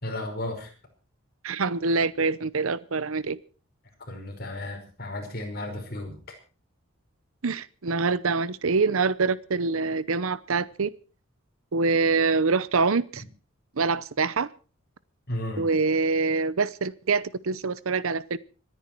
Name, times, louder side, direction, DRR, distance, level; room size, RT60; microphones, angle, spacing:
voice 1, 0.0-0.7 4.1-6.2 13.2-13.3 15.3-15.7, left 1 dB, 45° left, 5.3 m, -34 dB
voice 2, 1.4-3.4 7.4-10.9 11.7-13.2 13.8-14.5 15.6-18.4, right 4 dB, 75° right, 0.7 m, -25 dB
26.0 x 10.0 x 4.6 m
head